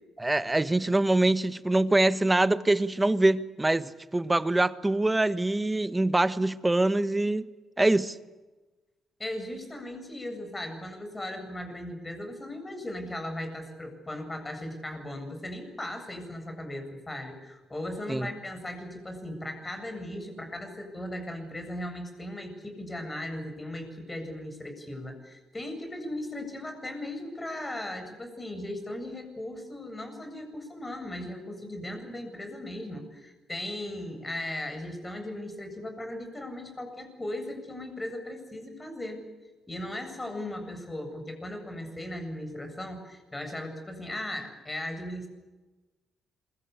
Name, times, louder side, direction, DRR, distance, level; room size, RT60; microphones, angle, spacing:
voice 1, 0.2-7.5 7.8-8.1 18.1-18.3, right 2 dB, 15° right, 13 dB, 1.3 m, -24 dB
voice 2, 9.2-39.2 39.7-45.3, left 1 dB, 20° left, 6 dB, 7.9 m, -37 dB
27.0 x 24.0 x 8.4 m, 1.2 s
cardioid pair, 90°, 0 cm